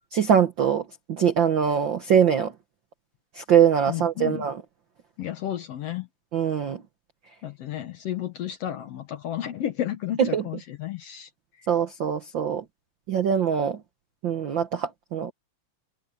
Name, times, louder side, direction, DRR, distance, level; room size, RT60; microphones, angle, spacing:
voice 1, 0.1-2.5 3.3-4.6 6.3-6.8 10.2-10.4 11.7-12.6 13.1-13.8 14.2-15.3, right 8 dB, 80° right, 1.0 m, -22 dB
voice 2, 3.9-4.5 5.2-6.1 7.4-11.3, left 11 dB, 65° left, 1.6 m, -32 dB
omnidirectional pair, 3.8 m